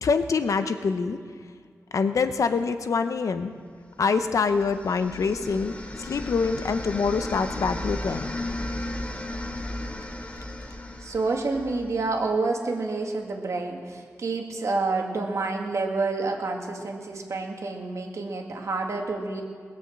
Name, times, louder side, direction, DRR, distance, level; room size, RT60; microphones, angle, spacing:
voice 1, 0.0-1.2 1.9-3.5 4.0-8.3, left 5 dB, 85° left, 9 dB, 0.8 m, -25 dB
sound 1, 4.2-12.2, left 1 dB, 25° left, 1.3 m, -35 dB
voice 2, 11.0-19.4, right 3 dB, 70° right, 2 dB, 1.9 m, -28 dB
20.0 x 7.1 x 7.7 m, 2.1 s
wide cardioid pair, 85°, 5 cm